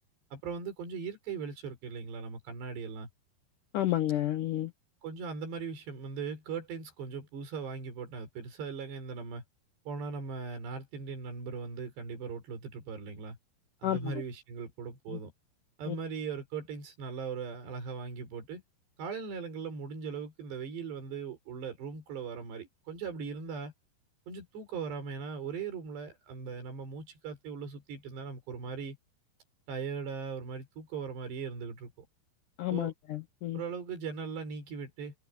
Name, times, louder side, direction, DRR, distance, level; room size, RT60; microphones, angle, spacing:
voice 1, 0.3-3.1 5.0-9.4 9.9-13.4 13.8-15.3 15.8-18.6 19.0-23.7 24.3-29.0 29.7-31.9 32.7-32.9 33.5-35.1, right 5 dB, 80° right, 7.5 m, -39 dB
voice 2, 3.7-4.7 13.8-14.1 15.1-15.2 15.9-16.0 32.6-33.6, left 13 dB, 75° left, 1.9 m, -31 dB
omnidirectional pair, 4.8 m